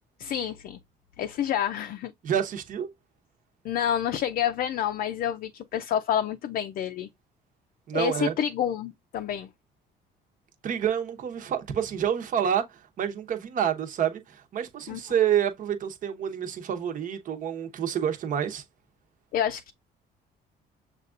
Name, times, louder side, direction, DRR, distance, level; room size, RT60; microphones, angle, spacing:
voice 1, 0.2-0.8 1.2-2.1 3.6-7.1 7.9-9.5 14.9-15.0 19.3-19.7, left 10 dB, 60° left, 0.5 m, -28 dB
voice 2, 2.2-2.9 7.9-8.3 10.6-18.6, right 9 dB, 50° right, 0.9 m, -28 dB
6.6 x 2.4 x 2.5 m
cardioid pair, 110°, 17 cm